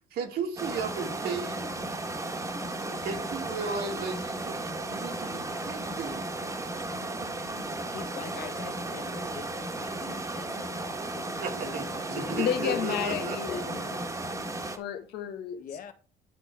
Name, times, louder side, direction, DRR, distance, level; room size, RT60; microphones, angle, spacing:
voice 1, 0.0-1.7 3.0-6.2 11.4-13.4, right 4 dB, 70° right, 2.4 m, -35 dB
sound 1, 0.6-14.8, right 2 dB, 20° right, 1.5 m, -35 dB
voice 2, 2.9-3.3 4.0-4.1 4.5-4.7 7.8-10.8 11.1-14.2 15.6-15.9, left 6 dB, 55° left, 1.3 m, -44 dB
voice 3, 12.3-13.8 14.8-15.6, left 8 dB, 80° left, 1.5 m, -31 dB
10.5 x 3.8 x 4.8 m
cardioid pair, 110°, 17 cm